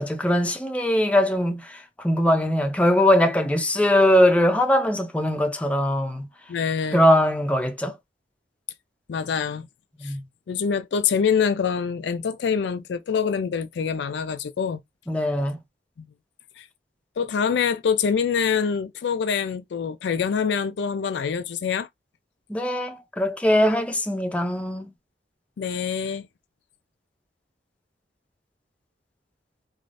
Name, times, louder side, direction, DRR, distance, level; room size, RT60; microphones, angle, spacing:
voice 1, 0.0-1.8 2.0-6.3 6.9-8.0 10.0-10.2 15.1-15.6 22.5-24.9, left 1 dB, 10° left, 0.5 m, -21 dB
voice 2, 6.5-7.0 9.1-9.7 10.0-10.1 10.5-14.8 16.0-16.1 16.6-16.7 17.2-21.9 25.6-26.3, left 6 dB, 70° left, 0.4 m, -25 dB
3.2 x 2.4 x 2.5 m
head